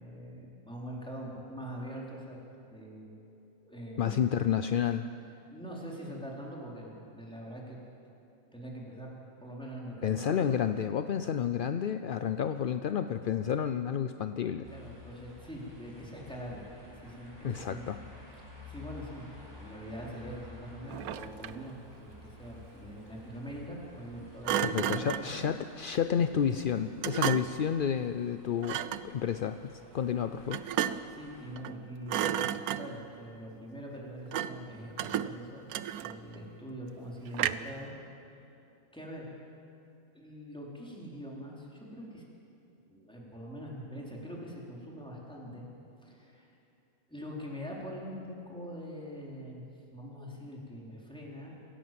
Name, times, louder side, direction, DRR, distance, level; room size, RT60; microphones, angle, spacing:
voice 1, 0.0-2.4 2.7-3.1 3.6-4.3 5.5-7.8 8.5-9.1 9.4-10.6 14.7-17.8 18.4-25.5 31.1-35.6 36.0-37.9 38.9-39.3 40.1-42.2 42.9-45.7 46.0-46.5 47.1-49.6 49.9-51.6, equal, 5° left, -4 dB, 4.2 m, -43 dB
voice 2, 4.0-5.1 10.0-14.7 17.4-18.0 24.6-30.6, left 8 dB, 55° left, 9 dB, 0.6 m, -30 dB
sound 1, 14.6-31.5, left 2 dB, 15° right, 4.3 m, -53 dB
Thump thud, 20.9-21.7 24.4-25.3 27.0-27.7 28.6-29.1 30.5-31.2 31.6-31.8 32.1-33.1 34.3-34.7 35.0-36.4 37.3-37.8, right 10 dB, 90° right, 1.2 m, -33 dB
27.0 x 16.5 x 7.7 m, 2.7 s
omnidirectional pair, 1.5 m